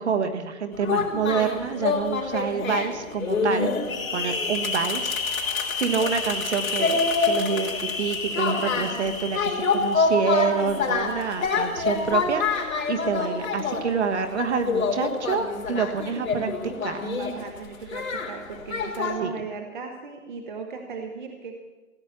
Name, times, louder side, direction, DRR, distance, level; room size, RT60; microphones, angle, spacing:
voice 1, 0.0-3.8 4.1-17.0 19.2-19.3, right 6 dB, 50° right, 6 dB, 1.5 m, -27 dB
sound 1, 0.7-19.1, left 4 dB, 70° left, 3.5 m, -27 dB
voice 2, 17.2-21.6, right 5 dB, 35° right, 4 dB, 1.1 m, -36 dB
16.0 x 9.2 x 8.2 m, 1.2 s
hypercardioid pair, 170°, 42 cm